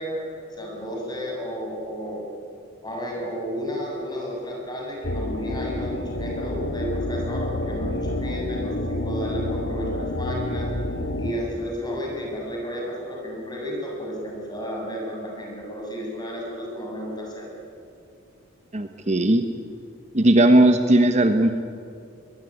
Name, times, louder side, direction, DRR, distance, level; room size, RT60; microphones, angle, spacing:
voice 1, 0.0-2.2 2.8-10.7 11.2-17.5, equal, 20° left, -2 dB, 7.4 m, -32 dB
sound 1, 5.0-11.3, left 1 dB, 75° left, 2.3 m, -28 dB
voice 2, 18.7-19.4 20.1-21.6, right 1 dB, 35° right, 7 dB, 1.1 m, -17 dB
22.0 x 21.0 x 10.0 m, 2.4 s
head